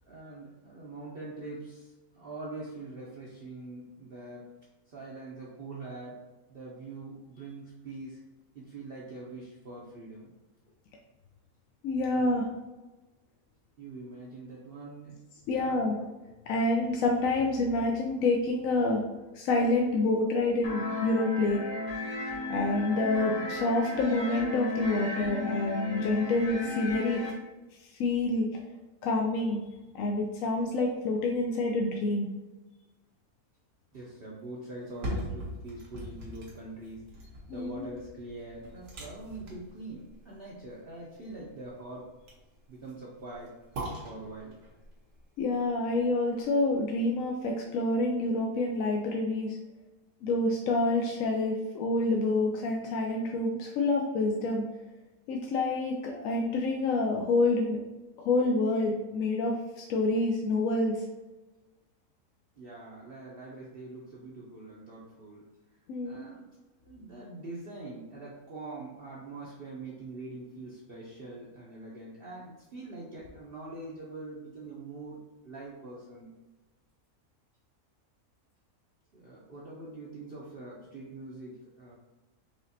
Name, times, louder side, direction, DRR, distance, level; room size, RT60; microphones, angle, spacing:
voice 1, 0.0-4.5 4.9-8.2 8.5-10.3 13.8-15.2 15.5-15.8 33.9-42.1 42.7-43.5 44.0-44.6 62.5-65.5 66.0-66.5 66.8-76.3 79.1-82.0, right 2 dB, 50° right, -5 dB, 0.7 m, -44 dB
voice 2, 11.8-12.5 15.5-15.9 16.5-19.0 19.3-21.6 22.5-27.2 27.9-28.5 29.0-29.6 29.9-32.3 37.5-37.8 45.4-49.6 50.2-54.7 55.3-57.8 58.2-61.0 65.9-66.2, left 2 dB, 70° left, 0 dB, 0.9 m, -28 dB
sound 1, 20.6-27.3, left 3 dB, 40° left, 1.0 m, -34 dB
sound 2, 34.7-46.8 47.2-47.3, equal, 85° right, 1.6 m, -42 dB
4.9 x 3.0 x 2.7 m, 1.1 s
omnidirectional pair, 1.6 m